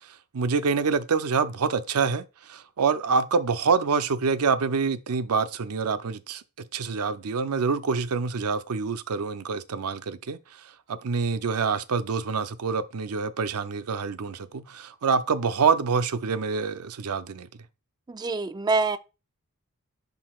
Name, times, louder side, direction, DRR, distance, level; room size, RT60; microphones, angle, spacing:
voice 1, 0.3-6.4 6.7-10.4 10.9-17.5, right 5 dB, 80° right, 0.5 m, -26 dB
voice 2, 18.1-19.0, right 3 dB, 20° right, 0.3 m, -25 dB
10.5 x 3.8 x 2.4 m
head